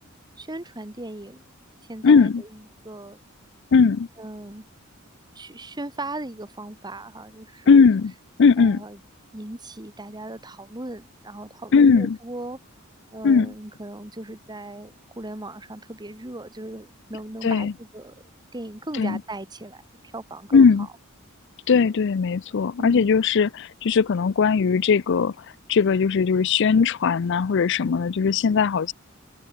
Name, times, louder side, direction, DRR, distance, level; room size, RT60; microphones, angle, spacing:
voice 1, 0.4-1.4 1.9-3.2 4.2-4.6 5.3-7.8 8.6-9.0 9.3-12.6 13.1-18.1 18.5-19.8 20.1-20.9 22.8-23.1, right 2 dB, 20° right, 1.6 m, -37 dB
voice 2, 2.0-2.4 3.7-4.1 7.7-8.1 8.4-8.8 11.7-12.2 13.2-13.5 17.4-17.7 19.0-19.2 20.5-20.9 21.7-28.9, left 5 dB, 55° left, 0.4 m, -19 dB
head